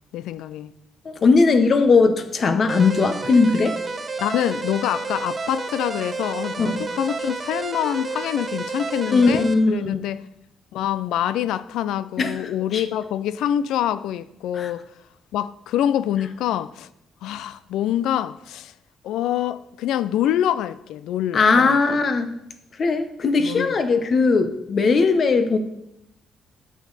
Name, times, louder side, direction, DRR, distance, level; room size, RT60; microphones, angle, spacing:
voice 1, 0.1-0.7 4.2-10.2 10.7-14.8 15.3-16.9 17.2-18.7 19.0-21.8 23.4-23.8, left 11 dB, 90° left, 0.3 m, -25 dB
voice 2, 1.0-3.7 6.6-6.8 9.1-10.0 12.2-12.4 12.7-12.8 14.5-14.7 21.3-22.3 22.8-25.6, left 4 dB, 50° left, 0.9 m, -19 dB
sound 1, 2.7-9.5, right 4 dB, 35° right, 0.9 m, -30 dB
8.0 x 6.4 x 4.0 m
cardioid pair, 90°, 0 cm